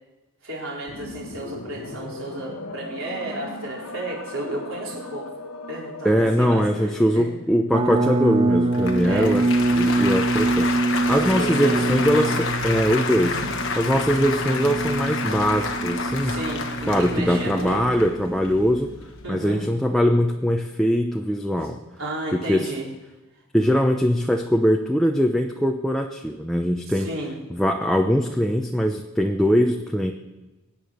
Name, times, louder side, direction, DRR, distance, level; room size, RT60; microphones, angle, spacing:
voice 1, 0.4-5.3 5.7-7.3 9.0-9.4 11.1-11.9 13.2-13.5 16.2-17.9 19.2-19.6 22.0-22.9 26.9-27.4, right 1 dB, 65° right, -3 dB, 4.5 m, -32 dB
sound 1, 0.9-7.4, left 2 dB, 85° left, 1.3 m, -38 dB
voice 2, 6.0-9.4 9.8-10.7 11.1-13.4 13.8-16.4 16.9-18.9 19.3-21.8 22.3-22.7 23.5-27.1 27.5-30.1, equal, ahead, 2 dB, 0.7 m, -21 dB
sound 2, 7.7-18.7, right 2 dB, 25° right, 0.9 m, -25 dB
Applause, 8.7-19.3, left 4 dB, 60° left, 1.2 m, -30 dB
23.0 x 9.1 x 6.4 m, 1.1 s
head